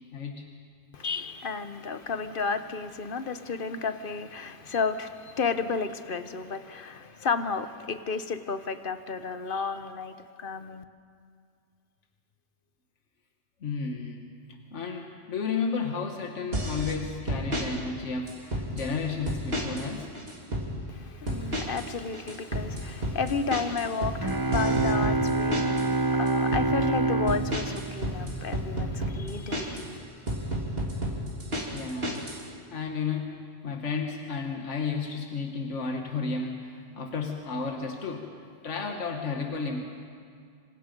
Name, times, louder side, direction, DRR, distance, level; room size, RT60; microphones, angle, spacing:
voice 1, 0.1-0.5 13.6-14.2 14.7-20.1 31.7-32.3 32.7-38.2 38.6-39.8, left 5 dB, 80° left, 1.8 m, -32 dB
voice 2, 0.9-10.8 20.9-30.0, left 5 dB, 50° left, 1.1 m, -32 dB
sound 1, 16.5-16.9 17.3-17.7 18.3-18.9 19.3-19.9 20.2-20.7 21.3-21.9 22.1-25.9 26.3-26.7 27.3-29.9 30.3-32.4, equal, 55° right, 3.5 m, -31 dB
sound 2, 24.2-28.9, right 3 dB, 25° right, 0.5 m, -27 dB
26.5 x 26.0 x 5.3 m
omnidirectional pair, 1.2 m